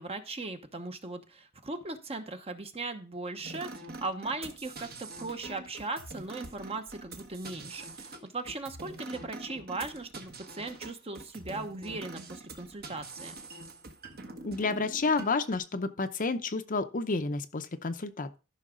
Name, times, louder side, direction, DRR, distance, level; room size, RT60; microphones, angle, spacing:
voice 1, 0.0-13.3, right 3 dB, 30° right, 1.0 m, -38 dB
sound 1, 3.4-15.6, right 2 dB, 50° right, 1.4 m, -45 dB
voice 2, 14.4-18.3, left 3 dB, 40° left, 0.7 m, -30 dB
13.5 x 5.9 x 3.8 m
head